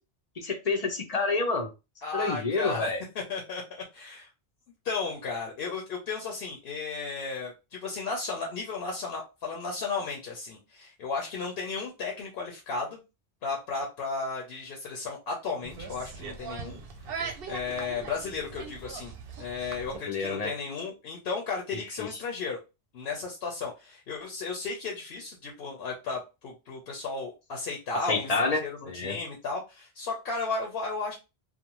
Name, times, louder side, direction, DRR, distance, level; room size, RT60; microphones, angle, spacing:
voice 1, 0.4-1.7 2.1-3.0 20.1-20.5 22.0-22.1 28.1-29.2, left 3 dB, 50° left, 4 dB, 0.5 m, -28 dB
voice 2, 2.0-4.3 4.8-13.0 13.4-16.8 17.5-22.6 22.9-31.2, left 4 dB, 70° left, 0 dB, 0.8 m, -34 dB
sound 1, 15.6-20.0, right 5 dB, 65° right, 0.7 m, -40 dB
2.5 x 2.1 x 2.9 m, 0.27 s
omnidirectional pair, 1.1 m